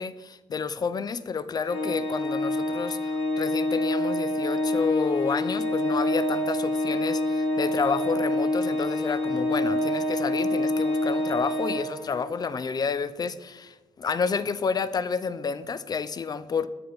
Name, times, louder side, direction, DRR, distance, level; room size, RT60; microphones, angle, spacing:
voice 1, 0.0-16.7, left 5 dB, 35° left, 0.3 m, -30 dB
Organ, 1.6-12.4, left 1 dB, 55° left, 1.2 m, -27 dB
7.6 x 3.9 x 3.3 m
cardioid pair, 75°, 12 cm